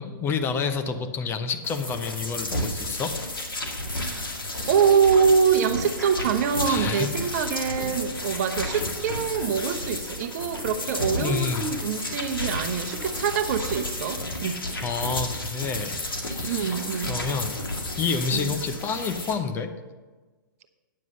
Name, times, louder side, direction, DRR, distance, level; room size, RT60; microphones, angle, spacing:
voice 1, 0.0-3.1 6.6-7.1 7.4-7.7 8.7-8.8 11.2-11.7 14.8-17.6 18.0-19.7, left 5 dB, 20° left, 8 dB, 0.8 m, -29 dB
sound 1, 1.6-19.3, left 1 dB, 80° left, 2.1 m, -32 dB
voice 2, 3.9-4.3 4.7-14.6 16.4-17.2 18.3-18.6, right 7 dB, 50° right, 8 dB, 0.9 m, -24 dB
9.6 x 7.2 x 6.8 m, 1.3 s
figure-of-eight pair, 120°, 11 cm